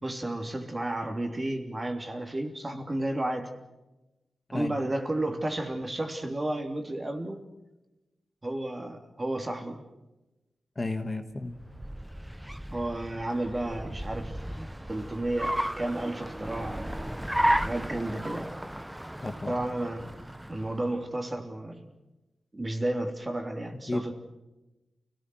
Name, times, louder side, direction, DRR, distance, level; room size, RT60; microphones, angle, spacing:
voice 1, 0.0-3.5 4.5-7.5 8.4-9.8 12.7-17.0 17.3-18.5 19.5-20.2 20.5-21.9 22.5-24.1, right 1 dB, 25° right, 5 dB, 3.1 m, -32 dB
voice 2, 10.7-11.6 19.2-19.6 23.9-24.1, left 2 dB, 25° left, 6 dB, 1.7 m, -33 dB
Car, 11.4-21.0, right 1 dB, 5° right, 0.7 m, -34 dB
29.5 x 18.5 x 6.3 m, 1.0 s
wide cardioid pair, 110°, 0 cm